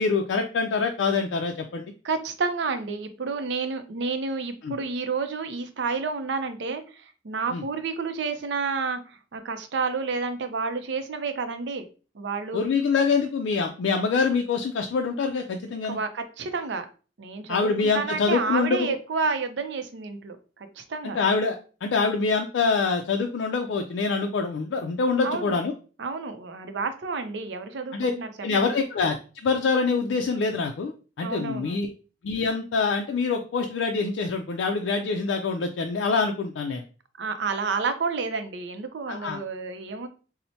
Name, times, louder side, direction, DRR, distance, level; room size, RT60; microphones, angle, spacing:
voice 1, 0.0-1.9 4.6-4.7 7.5-7.6 12.5-16.0 17.5-19.0 21.0-25.7 27.9-28.1 28.4-29.2 29.4-31.9 32.2-36.8 39.1-39.4, left 4 dB, 85° left, 3 dB, 0.4 m, -25 dB
voice 2, 2.0-11.9 12.1-12.6 15.8-16.9 17.2-21.2 25.2-25.6 26.0-28.3 28.6-28.7 31.2-31.8 37.2-40.1, right 4 dB, 70° right, 8 dB, 0.5 m, -30 dB
4.3 x 2.1 x 2.7 m, 0.36 s
head